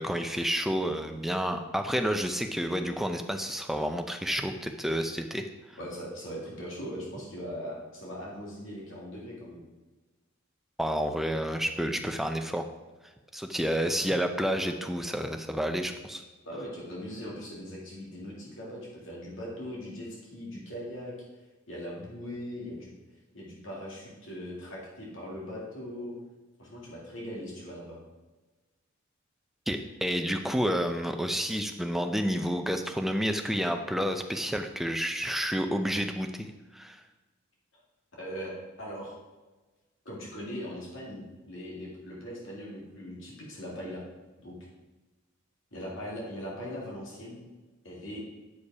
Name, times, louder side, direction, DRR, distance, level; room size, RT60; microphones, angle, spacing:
voice 1, 0.0-5.4 10.8-12.6 13.3-16.2 29.7-36.5 36.7-37.0, equal, ahead, 5 dB, 0.5 m, -30 dB
voice 2, 5.8-9.6 16.5-21.1 21.7-22.9 23.3-26.2 26.6-28.0 38.2-39.2 40.0-44.0 44.4-44.6 45.7-47.4 47.8-48.2, equal, 70° left, -4 dB, 2.2 m, -40 dB
8.4 x 5.1 x 4.7 m, 1.2 s
head